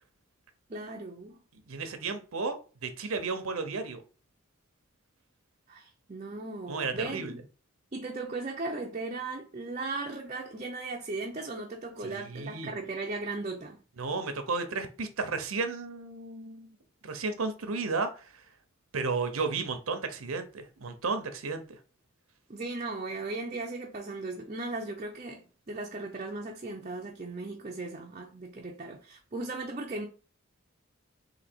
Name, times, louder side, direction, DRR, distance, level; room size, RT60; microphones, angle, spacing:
voice 1, 0.7-1.4 5.7-7.4 7.9-13.8 22.5-30.1, right 3 dB, 35° right, 0.6 m, -37 dB
voice 2, 1.5-4.0 6.7-7.3 12.0-12.8 14.0-16.7 17.0-18.4 18.9-21.8, right 4 dB, 85° right, 0.8 m, -33 dB
4.0 x 2.8 x 4.4 m
head